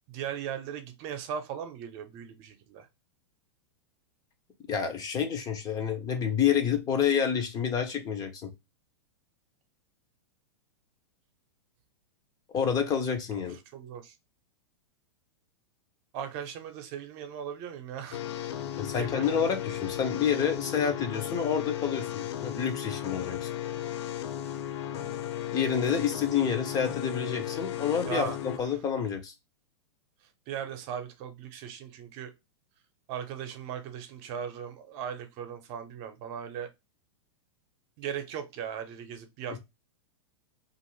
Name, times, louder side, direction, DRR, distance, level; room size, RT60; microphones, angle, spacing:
voice 1, 0.1-2.9 13.7-14.1 16.1-18.2 18.9-19.4 28.1-28.4 30.5-32.3 33.1-36.7 38.0-39.6, right 8 dB, 45° right, 0.8 m, -38 dB
voice 2, 4.7-8.5 12.5-13.6 18.8-23.5 25.5-29.3, left 7 dB, 25° left, 0.7 m, -28 dB
sound 1, 18.1-28.6, left 11 dB, 65° left, 0.6 m, -35 dB
2.6 x 2.5 x 3.1 m
hypercardioid pair, 130°, 15 cm